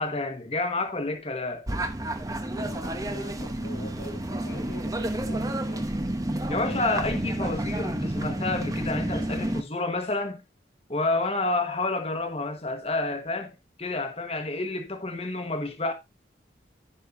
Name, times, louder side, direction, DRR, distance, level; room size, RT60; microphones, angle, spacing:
voice 1, 0.0-1.7 6.5-10.4 10.9-15.9, left 2 dB, 30° left, 1.3 m, -29 dB
sound 1, 1.7-9.6, right 1 dB, 20° right, 0.8 m, -30 dB
voice 2, 2.6-5.9, left 2 dB, 60° left, 0.9 m, -44 dB
15.5 x 5.6 x 2.6 m
head